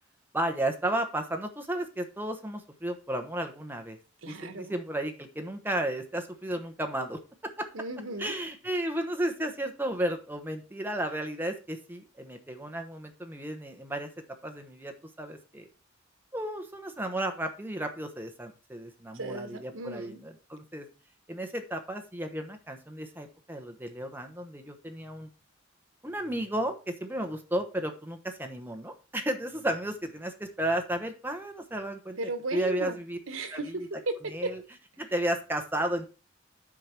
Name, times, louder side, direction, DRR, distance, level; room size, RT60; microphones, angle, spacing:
voice 1, 0.3-4.0 4.2-7.7 8.2-15.7 16.3-20.9 21.3-25.3 26.0-32.2 32.5-33.2 33.5-33.6 34.3-34.6 35.0-36.1, right 1 dB, 10° right, 5 dB, 1.0 m, -33 dB
voice 2, 4.2-4.7 7.7-8.3 19.1-20.2 32.2-33.0 33.3-34.1, right 2 dB, 90° right, 9 dB, 1.1 m, -35 dB
8.5 x 4.8 x 4.4 m, 0.34 s
head